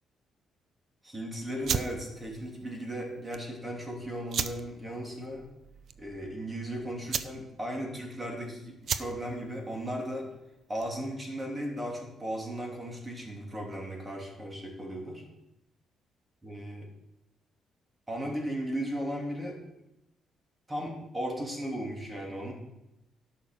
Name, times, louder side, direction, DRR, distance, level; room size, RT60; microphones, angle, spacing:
voice 1, 1.0-5.5 6.0-10.3 10.7-15.2 16.4-16.9 18.1-19.6 20.7-22.5, equal, 20° right, 0 dB, 3.1 m, -36 dB
sound 1, 1.6-11.1, right 7 dB, 60° right, 0.6 m, -37 dB
11.5 x 6.5 x 6.3 m, 0.90 s
cardioid pair, 90°, 0 cm